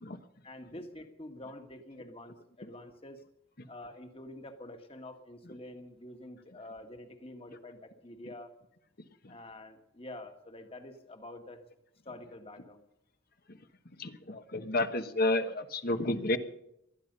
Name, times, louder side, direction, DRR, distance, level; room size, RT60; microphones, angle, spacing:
voice 1, 0.4-3.2 3.7-8.5 9.3-11.7 12.1-12.8, left 1 dB, 30° left, 6 dB, 1.7 m, -47 dB
voice 2, 9.0-9.3 13.5-13.6 13.9-16.4, left 2 dB, 50° left, 9 dB, 1.2 m, -31 dB
19.0 x 13.0 x 5.4 m, 0.78 s
head